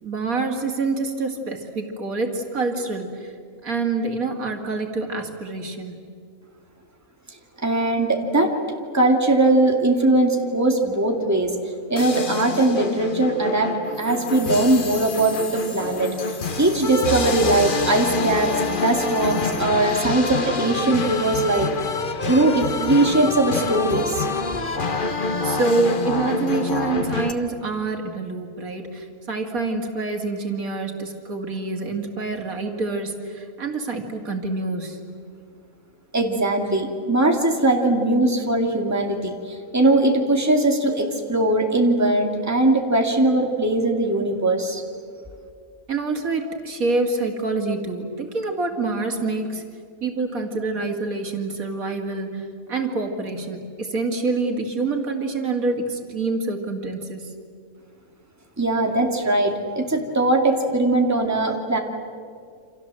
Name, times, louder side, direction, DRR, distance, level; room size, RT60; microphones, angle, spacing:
voice 1, 0.0-3.3 3.6-5.9 25.4-35.0 45.9-49.6 50.0-57.3, right 3 dB, 75° right, 3 dB, 2.8 m, -26 dB
voice 2, 7.6-8.5 8.9-11.5 11.9-13.7 14.0-16.1 16.6-21.7 22.2-24.3 36.1-39.3 39.7-44.8 58.6-61.8, right 2 dB, 10° right, 2 dB, 2.4 m, -20 dB
sound 1, 12.0-27.3, left 3 dB, 40° left, 1.3 m, -27 dB
29.0 x 26.5 x 7.6 m, 2.3 s
omnidirectional pair, 1.5 m